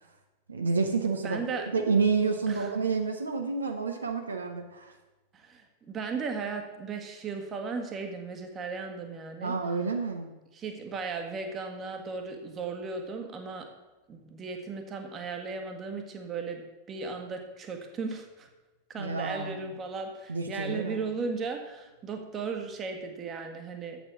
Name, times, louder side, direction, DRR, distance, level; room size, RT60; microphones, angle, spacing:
voice 1, 0.5-4.9 9.4-10.3 19.0-19.7 20.3-21.0, right 4 dB, 75° right, 4 dB, 0.8 m, -29 dB
voice 2, 1.2-1.7 2.5-2.7 5.3-9.5 10.6-13.7 14.1-18.5 18.9-24.0, right 4 dB, 25° right, 4 dB, 1.4 m, -36 dB
7.8 x 7.0 x 6.0 m, 1.1 s
figure-of-eight pair, 90°, 0 cm